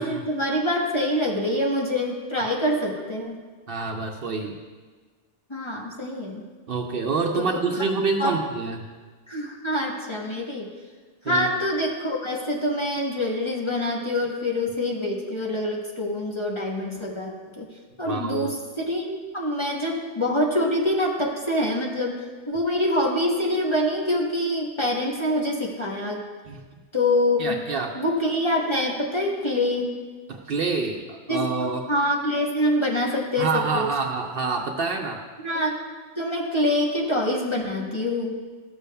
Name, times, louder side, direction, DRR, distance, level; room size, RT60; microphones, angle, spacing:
voice 1, 0.0-3.4 5.5-6.5 7.4-7.6 8.2-8.4 9.3-10.7 11.2-17.7 18.0-26.2 26.9-27.6 27.9-30.0 31.3-31.4 31.9-33.9 35.4-35.8 36.2-38.4, left 1 dB, 25° left, -2 dB, 0.9 m, -25 dB
voice 2, 3.7-4.6 6.7-8.9 11.2-11.5 18.0-18.5 26.5-26.6 27.4-28.0 30.3-31.8 33.4-35.2, right 4 dB, 60° right, 2 dB, 0.8 m, -27 dB
13.5 x 6.8 x 2.2 m, 1.4 s
omnidirectional pair, 1.2 m